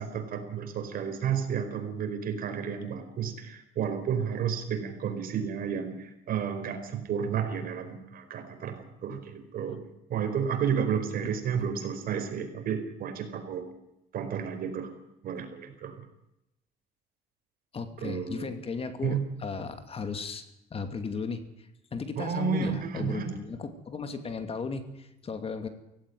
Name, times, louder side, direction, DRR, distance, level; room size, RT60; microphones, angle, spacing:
voice 1, 0.0-9.8 10.1-13.7 14.1-14.9 15.2-16.0 18.0-18.5 19.0-19.2 22.2-23.3, right 7 dB, 60° right, 6 dB, 4.8 m, -32 dB
voice 2, 17.7-20.4 20.7-25.7, left 5 dB, 35° left, 9 dB, 2.6 m, -36 dB
17.0 x 17.0 x 9.4 m, 0.87 s
cardioid pair, 110°, 17 cm